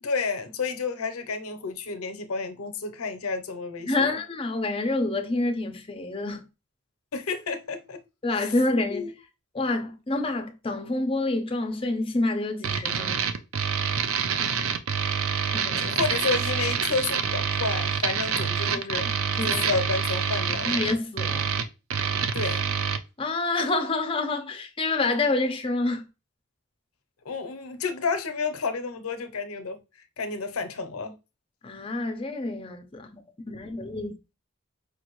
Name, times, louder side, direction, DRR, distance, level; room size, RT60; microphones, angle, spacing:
voice 1, 0.0-4.1 7.1-8.0 8.3-8.5 8.9-9.1 15.8-19.1 19.4-20.8 22.3-22.7 27.2-29.8 30.2-31.1, left 4 dB, 90° left, 0.7 m, -30 dB
voice 2, 3.9-6.5 8.2-9.1 9.5-13.3 15.5-16.0 19.4-19.6 20.7-21.5 23.2-26.1 31.6-33.2 33.5-34.2, left 2 dB, 25° left, 0.6 m, -28 dB
sound 1, 12.6-23.0, right 7 dB, 75° right, 0.5 m, -27 dB
5.1 x 2.6 x 3.0 m
head